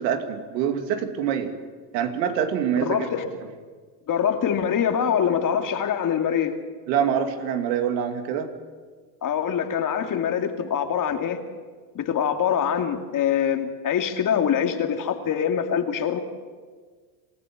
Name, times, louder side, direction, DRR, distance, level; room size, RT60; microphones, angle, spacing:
voice 1, 0.0-1.5 1.9-3.1 6.9-8.5, right 8 dB, 80° right, 7 dB, 2.6 m, -25 dB
voice 2, 2.8-3.3 4.1-6.6 9.2-11.4 11.9-16.2, left 8 dB, 40° left, 6 dB, 2.5 m, -24 dB
26.5 x 15.0 x 7.6 m, 1.5 s
supercardioid pair, 105°, 50 cm